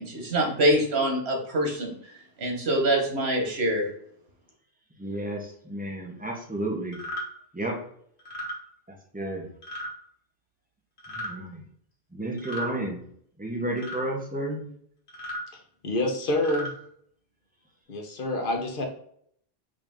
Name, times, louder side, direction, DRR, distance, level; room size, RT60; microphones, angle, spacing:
voice 1, 0.0-3.9, right 1 dB, 90° right, 1 dB, 1.5 m, -25 dB
voice 2, 5.0-7.0 7.5-7.8 9.1-9.5 11.2-11.6 12.1-13.0 13.4-14.7, right 1 dB, 10° right, -1 dB, 0.9 m, -32 dB
sound 1, 6.9-7.2 8.2-8.6 9.6-9.9 11.0-11.3 12.4-12.7 13.8-14.0 15.1-15.4 16.3-16.7, equal, 85° left, 1.5 m, -35 dB
voice 3, 15.5-16.7 17.9-18.8, left 1 dB, 60° left, 3 dB, 1.1 m, -28 dB
5.0 x 2.8 x 3.6 m, 0.66 s
omnidirectional pair, 1.0 m